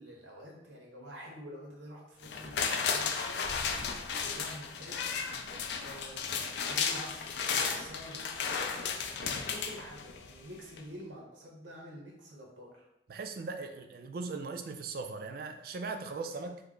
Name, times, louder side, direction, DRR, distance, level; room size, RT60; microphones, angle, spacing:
voice 1, 0.0-3.7 4.1-5.2 5.8-7.2 7.5-8.3 8.8-12.9, equal, 85° right, -1 dB, 0.9 m, -48 dB
sound 1, 2.2-10.4 10.8-10.9, left 6 dB, 65° left, 0.3 m, -34 dB
voice 2, 13.1-16.6, right 4 dB, 50° right, 6 dB, 0.3 m, -39 dB
3.2 x 2.0 x 3.7 m, 0.87 s
head